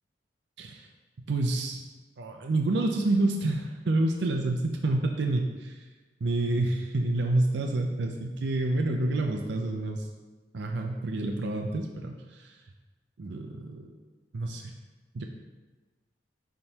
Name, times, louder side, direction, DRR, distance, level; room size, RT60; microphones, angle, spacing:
voice 1, 1.3-1.8 2.2-5.8 6.2-10.1 10.5-12.5 13.2-13.9 14.3-14.6 15.1-15.2, right 2 dB, 70° right, 2 dB, 0.5 m, -28 dB
9.5 x 3.7 x 2.9 m, 1.3 s
head